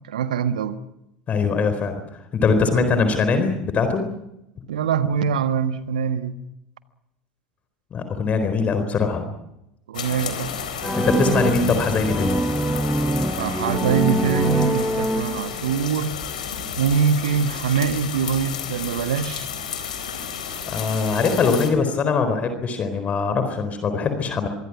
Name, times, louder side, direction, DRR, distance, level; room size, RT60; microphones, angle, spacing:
voice 1, 0.1-0.8 4.7-6.4 9.9-10.7 11.2-11.4 13.3-16.2 16.8-19.5, right 7 dB, 70° right, 1.5 m, -23 dB
voice 2, 1.3-2.0 2.3-4.0 7.9-9.3 11.0-12.3 20.7-24.5, left 4 dB, 35° left, 4.2 m, -22 dB
sound 1, 9.9-21.7, left 7 dB, 70° left, 4.1 m, -32 dB
sound 2, 10.8-15.8, right 1 dB, ahead, 1.1 m, -24 dB
25.5 x 23.5 x 6.1 m
figure-of-eight pair, 70°, 4 cm